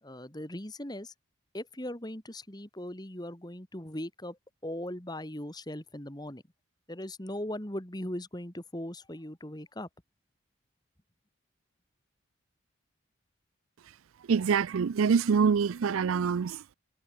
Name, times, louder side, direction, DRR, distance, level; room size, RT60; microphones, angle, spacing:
voice 1, 0.0-1.1 1.5-6.4 6.9-9.9, left 1 dB, 20° left, 2.1 m, -39 dB
voice 2, 14.3-16.7, right 6 dB, 90° right, 0.4 m, -25 dB
head